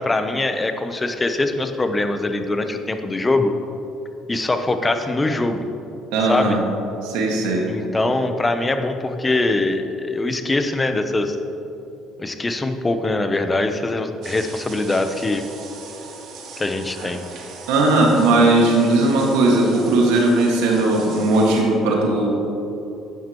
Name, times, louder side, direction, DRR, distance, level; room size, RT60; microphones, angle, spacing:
voice 1, 0.0-3.5 4.3-5.7 6.3-6.6 7.7-11.4 12.2-15.4 16.6-17.2, left 2 dB, 20° left, 7 dB, 0.8 m, -22 dB
voice 2, 6.1-6.6 7.0-7.6 17.7-22.3, right 2 dB, 85° right, -1 dB, 1.8 m, -17 dB
sound 1, 14.2-21.6, right 4 dB, 65° right, 1.6 m, -39 dB
11.5 x 9.2 x 3.0 m, 2.9 s
supercardioid pair, 85°, 0 cm